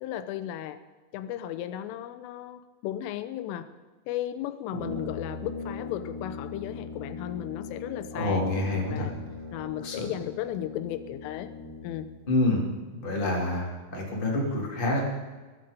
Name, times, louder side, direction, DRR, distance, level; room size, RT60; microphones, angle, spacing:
voice 1, 0.0-0.8 1.1-3.7 4.1-8.5 8.9-9.1 9.5-11.5 11.8-12.1, left 12 dB, 80° left, 11 dB, 3.3 m, -35 dB
Brass instrument, 4.7-12.2, left 3 dB, 70° right, 4.5 m, -40 dB
voice 2, 8.1-9.1 9.8-10.1 12.3-12.6 12.9-15.0, left 2 dB, 15° left, -2 dB, 2.3 m, -27 dB
21.5 x 10.5 x 5.3 m, 1.3 s
omnidirectional pair, 5.8 m